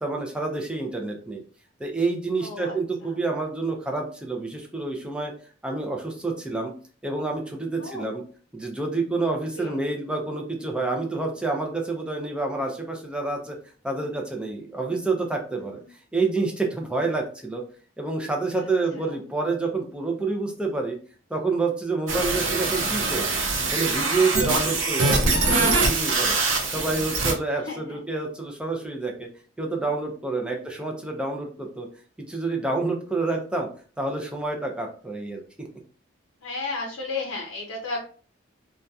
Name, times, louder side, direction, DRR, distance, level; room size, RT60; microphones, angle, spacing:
voice 1, 0.0-1.4 1.8-5.3 5.6-6.7 7.0-8.2 8.5-13.6 13.8-15.8 16.1-17.6 18.0-21.0 21.3-23.4 23.7-26.4 26.7-29.3 29.6-31.9 32.3-33.7 34.0-35.7, right 3 dB, 5° right, 1 dB, 0.4 m, -28 dB
voice 2, 2.4-3.1 7.8-8.1 9.6-9.8 15.5-15.9 18.6-19.1 27.5-28.0 30.5-30.7 36.4-38.0, left 3 dB, 90° left, -1 dB, 0.6 m, -35 dB
sound 1, 22.1-27.3, right 3 dB, 85° right, 0.6 m, -23 dB
2.7 x 2.2 x 2.3 m, 0.41 s
head